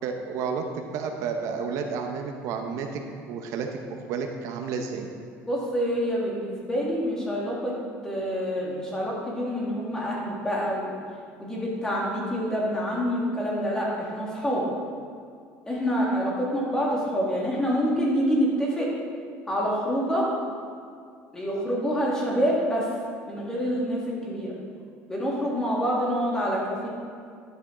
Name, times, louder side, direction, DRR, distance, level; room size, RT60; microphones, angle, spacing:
voice 1, 0.0-3.0 3.3-5.1, right 5 dB, 65° right, 4 dB, 0.8 m, -31 dB
voice 2, 5.5-7.8 8.0-11.0 11.4-14.6 15.7-18.9 19.5-20.3 21.3-22.9 23.3-24.5 25.1-26.9, equal, 10° left, -4 dB, 2.0 m, -26 dB
11.0 x 7.1 x 3.8 m, 2.2 s
cardioid pair, 145°, 6 cm